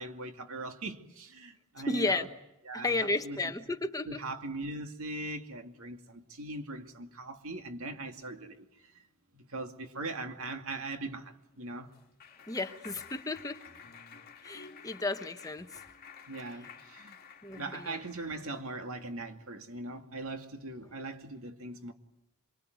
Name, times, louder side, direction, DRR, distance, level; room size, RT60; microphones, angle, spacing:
voice 1, 0.0-2.3 2.7-3.4 4.1-8.9 9.3-11.9 16.3-17.2 17.6-21.9, right 2 dB, 65° right, 2.4 m, -40 dB
voice 2, 1.9-2.3 2.7-4.2 12.5-13.6 14.4-15.7 17.4-18.0, left 2 dB, 15° left, 1.0 m, -33 dB
Clapping, 11.4-18.6, left 6 dB, 40° left, 2.6 m, -52 dB
26.0 x 24.0 x 9.4 m
head